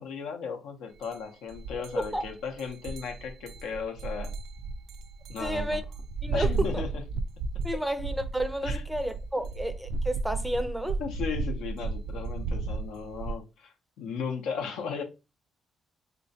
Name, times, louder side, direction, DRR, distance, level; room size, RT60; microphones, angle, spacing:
voice 1, 0.0-4.3 5.3-5.8 6.3-6.9 7.7-7.8 8.6-8.8 11.0-15.0, left 6 dB, 85° left, 0.7 m, -36 dB
sound 1, 1.0-1.2 1.5-13.3, right 3 dB, 80° right, 0.3 m, -34 dB
voice 2, 5.4-5.8 6.2-6.8 7.6-11.0, right 1 dB, 5° right, 0.4 m, -31 dB
3.4 x 3.0 x 2.7 m
cardioid pair, 90°, 0 cm